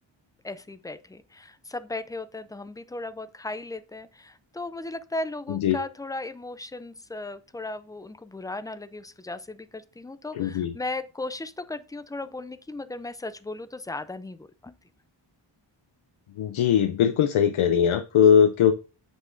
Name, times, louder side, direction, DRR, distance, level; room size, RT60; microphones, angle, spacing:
voice 1, 0.4-14.7, left 2 dB, 10° left, 0.3 m, -36 dB
voice 2, 10.3-10.7 16.4-18.7, left 8 dB, 90° left, 0.6 m, -20 dB
8.1 x 5.5 x 2.5 m
wide cardioid pair, 100°, 47 cm